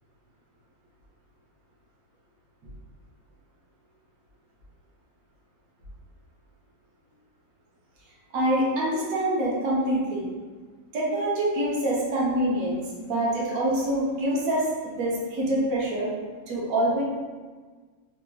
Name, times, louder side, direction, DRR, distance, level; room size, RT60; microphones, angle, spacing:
voice 1, 8.3-10.3 10.9-16.1 16.5-17.0, right 1 dB, 55° right, -5 dB, 1.2 m, -25 dB
4.5 x 2.8 x 2.3 m, 1.4 s
omnidirectional pair, 2.0 m